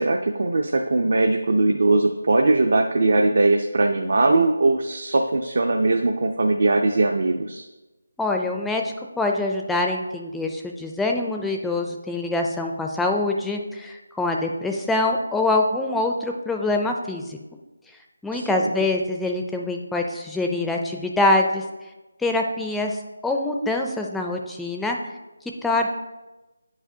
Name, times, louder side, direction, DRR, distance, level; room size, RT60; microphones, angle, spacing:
voice 1, 0.0-7.7 18.3-18.7, right 2 dB, 60° right, 3 dB, 0.5 m, -20 dB
voice 2, 8.2-17.4 18.2-21.6 22.2-25.0 25.6-25.9, left 2 dB, 5° left, 2 dB, 0.4 m, -24 dB
9.5 x 4.9 x 2.7 m, 1.1 s
figure-of-eight pair, 160°, 0 cm